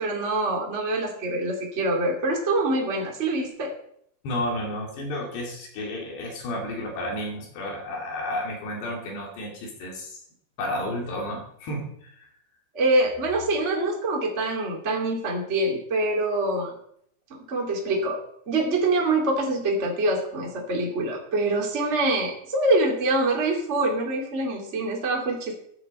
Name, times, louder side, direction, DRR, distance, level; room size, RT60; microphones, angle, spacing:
voice 1, 0.0-3.7 12.7-16.7 17.3-18.2 18.5-25.5, right 2 dB, 20° right, -1 dB, 2.3 m, -25 dB
voice 2, 4.2-10.2 10.6-12.3, left 1 dB, 85° left, -1 dB, 5.1 m, -32 dB
14.5 x 10.5 x 4.4 m, 0.69 s
omnidirectional pair, 4.7 m